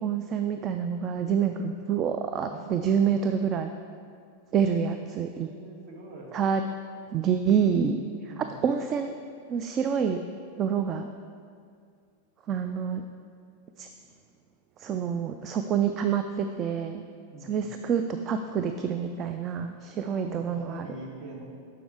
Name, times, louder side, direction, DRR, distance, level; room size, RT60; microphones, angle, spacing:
voice 1, 0.0-3.7 4.5-5.5 6.3-6.6 7.1-9.2 9.5-10.2 10.6-11.1 12.5-13.0 13.8-13.9 14.8-17.0 17.4-20.9, right 7 dB, 30° right, 7 dB, 0.3 m, -27 dB
voice 2, 2.5-3.2 5.0-6.4 8.3-8.7 17.3-17.8 20.0-21.4, right 2 dB, 45° right, -2 dB, 1.6 m, -44 dB
7.0 x 5.9 x 4.7 m, 2.2 s
figure-of-eight pair, 90°, 0 cm